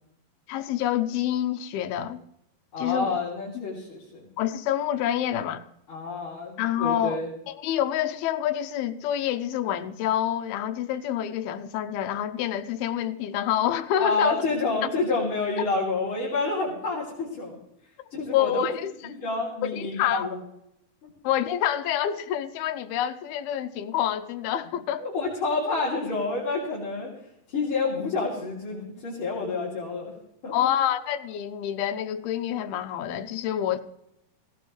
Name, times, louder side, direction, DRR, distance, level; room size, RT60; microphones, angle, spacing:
voice 1, 0.5-2.2 2.8-3.2 3.6-3.7 4.4-5.6 6.6-14.4 18.3-18.9 19.6-20.3 21.2-25.0 30.5-33.8, left 11 dB, 85° left, 2.6 m, -27 dB
voice 2, 2.7-4.3 5.9-7.3 14.0-17.6 18.1-18.7 19.0-20.4 21.0-21.1 25.0-27.1 27.5-30.1 30.4-30.5, left 3 dB, 35° left, 3.7 m, -28 dB
17.5 x 17.5 x 3.2 m
omnidirectional pair, 4.5 m